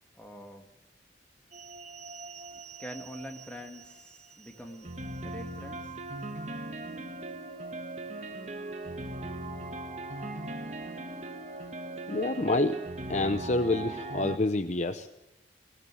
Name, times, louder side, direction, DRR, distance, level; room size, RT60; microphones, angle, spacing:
voice 1, 0.2-0.7 2.5-4.9 5.2-6.0, equal, 5° left, 3 dB, 2.1 m, -45 dB
sound 1, 1.5-14.4, right 2 dB, 40° right, 1.4 m, -39 dB
voice 2, 12.1-12.8 13.1-15.1, left 2 dB, 40° left, 9 dB, 0.7 m, -28 dB
21.0 x 19.5 x 7.7 m, 1.0 s
head